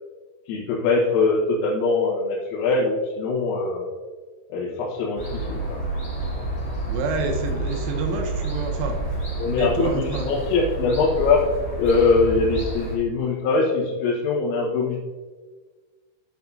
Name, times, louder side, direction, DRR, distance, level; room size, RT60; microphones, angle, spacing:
voice 1, 0.5-3.9 4.5-5.8 9.4-11.5 11.8-15.0, left 4 dB, 80° left, -6 dB, 4.0 m, -22 dB
sound 1, 5.2-12.9, right 2 dB, 30° left, 1.5 m, -29 dB
voice 2, 6.9-9.0 9.5-10.3 12.4-12.5, right 3 dB, 75° right, 4 dB, 3.3 m, -28 dB
11.5 x 7.0 x 2.7 m, 1.4 s
omnidirectional pair, 5.9 m